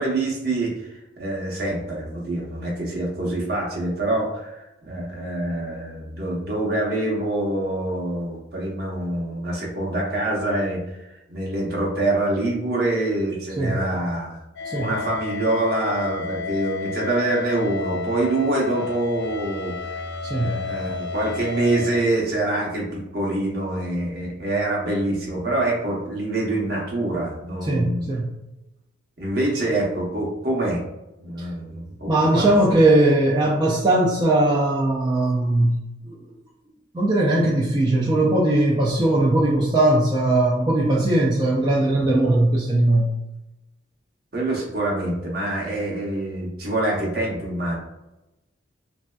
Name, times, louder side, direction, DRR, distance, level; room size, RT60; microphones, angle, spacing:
voice 1, 0.0-11.0 11.3-14.4 14.7-19.7 20.4-28.1 29.2-30.8 31.2-32.5 44.3-47.8, right 2 dB, 55° right, -3 dB, 0.9 m, -25 dB
sound 1, 14.6-21.9, left 4 dB, 60° left, 0.4 m, -31 dB
voice 2, 20.2-20.5 27.6-28.4 31.4-31.5 32.1-35.8 36.1-36.2 36.9-43.1, right 1 dB, 20° right, -6 dB, 0.4 m, -19 dB
3.2 x 2.6 x 2.3 m, 0.94 s
head